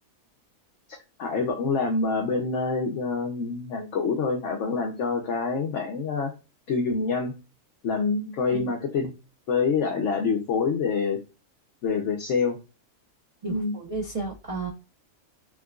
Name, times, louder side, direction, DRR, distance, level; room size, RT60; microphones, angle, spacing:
voice 1, 0.9-6.3 6.7-7.3 7.8-9.1 9.5-11.2 11.8-12.6 13.5-13.7, left 4 dB, 65° left, 1 dB, 1.0 m, -26 dB
voice 2, 13.4-14.7, right 3 dB, 40° right, -1 dB, 0.5 m, -33 dB
4.6 x 2.2 x 2.3 m, 0.30 s
omnidirectional pair, 1.5 m